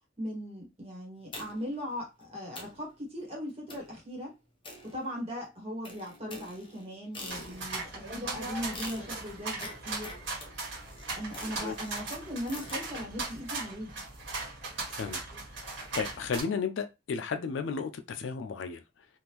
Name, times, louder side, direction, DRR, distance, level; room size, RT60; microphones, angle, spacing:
voice 1, 0.2-4.3 4.8-10.1 11.2-13.9, equal, 30° right, 1.3 m, -39 dB
sound 1, 1.3-1.8 2.2-2.3 2.6-2.9 3.7-4.0 4.6-5.4 5.8-7.9 8.7-12.9, left 2 dB, 25° left, 0.8 m, -46 dB
sound 2, 7.3-16.4, right 3 dB, 65° right, 1.4 m, -38 dB
voice 2, 14.9-15.2 15.5-18.8, left 5 dB, 65° left, 0.4 m, -34 dB
3.4 x 2.5 x 2.9 m
head